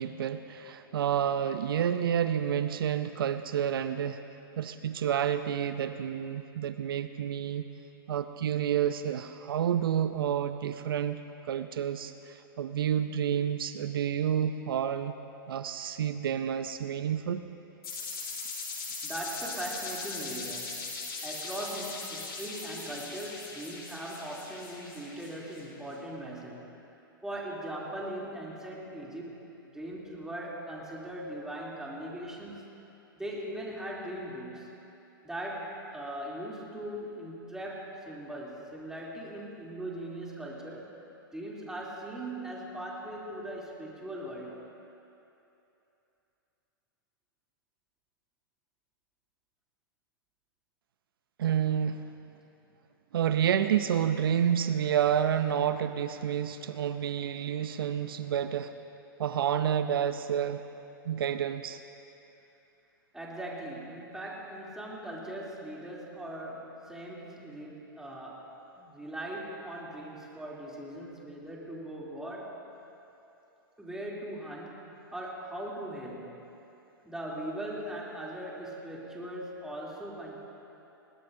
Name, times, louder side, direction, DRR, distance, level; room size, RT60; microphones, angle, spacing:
voice 1, 0.0-4.2 4.6-7.7 8.1-11.2 11.5-15.1 15.5-17.4 51.4-52.1 53.1-58.7 59.2-60.6 61.0-61.8, right 9 dB, 75° right, 10 dB, 0.6 m, -29 dB
sound 1, 17.8-25.6, left 4 dB, 80° left, 3.7 m, -39 dB
voice 2, 19.0-20.9 21.2-26.7 27.2-29.5 29.7-32.6 33.2-34.7 35.2-40.9 41.3-44.7 63.1-72.6 73.8-76.4 77.0-80.4, right 1 dB, 5° right, -5 dB, 3.0 m, -40 dB
21.0 x 19.0 x 2.7 m, 2.9 s
hypercardioid pair, 115°, 12 cm